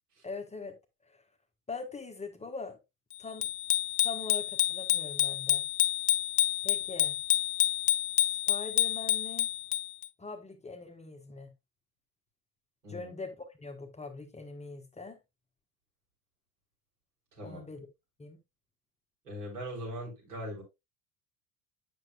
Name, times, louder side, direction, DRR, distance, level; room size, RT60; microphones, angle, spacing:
voice 1, 0.2-0.8 1.0-1.2 1.7-2.8 3.2-3.5 4.0-5.6 6.6-7.2 8.2-9.5 10.2-11.5 12.9-15.2 17.4-17.9 18.2-18.4, left 3 dB, 15° left, 1.1 m, -42 dB
Bicycle bell, 3.4-10.1, left 13 dB, 75° left, 0.7 m, -28 dB
voice 2, 17.4-17.7 19.2-20.6, equal, 75° right, 4.7 m, -40 dB
9.2 x 6.2 x 2.4 m
figure-of-eight pair, 65°, 47 cm